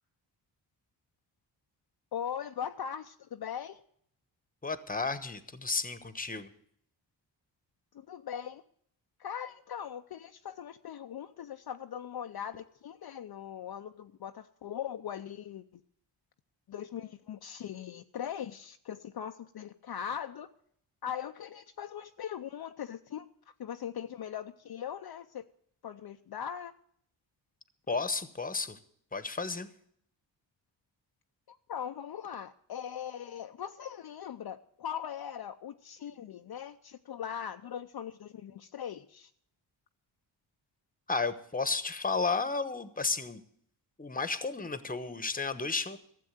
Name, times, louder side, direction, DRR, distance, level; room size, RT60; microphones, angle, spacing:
voice 1, 2.1-3.8 7.9-8.6 9.2-15.8 16.7-20.5 21.0-23.3 23.6-25.4 25.8-26.7 31.5-39.3, left 9 dB, 55° left, 7 dB, 0.7 m, -40 dB
voice 2, 4.6-6.5 27.9-28.8 29.1-29.7 41.1-43.4 44.0-46.0, left 4 dB, 20° left, 13 dB, 1.1 m, -33 dB
13.5 x 7.6 x 9.1 m, 0.66 s
cardioid pair, 70°, 46 cm